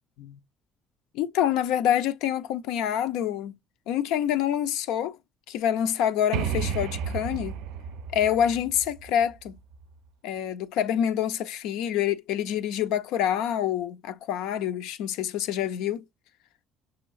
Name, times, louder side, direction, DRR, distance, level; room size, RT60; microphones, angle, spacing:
voice 1, 1.1-3.5 3.9-5.2 5.5-7.5 8.1-9.5 10.2-16.0, left 10 dB, 90° left, 0.5 m, -26 dB
sound 1, 6.3-10.0, right 7 dB, 80° right, 0.5 m, -33 dB
6.2 x 2.9 x 2.4 m
cardioid pair, 175°, 0 cm